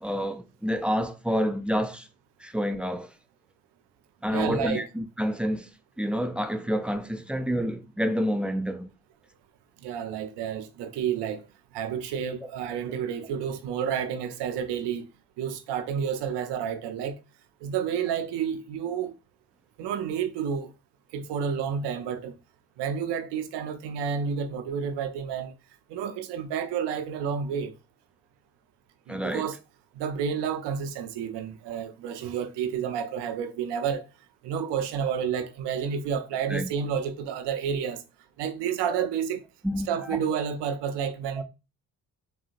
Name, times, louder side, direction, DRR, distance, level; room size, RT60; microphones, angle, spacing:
voice 1, 0.0-2.1 2.4-3.1 4.2-5.7 6.0-8.9 12.4-12.5 29.1-29.5 36.5-36.7 38.9-39.1 39.6-40.2 41.4-41.5, equal, 5° right, 0.3 m, -28 dB
voice 2, 4.3-4.9 9.8-11.4 11.7-15.1 15.4-17.2 17.6-19.2 19.8-20.7 21.1-22.3 22.8-25.5 25.9-27.7 29.1-29.6 29.9-34.0 34.4-38.0 38.4-39.4 39.9-41.4, right 7 dB, 80° right, 0.6 m, -30 dB
3.8 x 2.0 x 2.4 m
supercardioid pair, 55°, 41 cm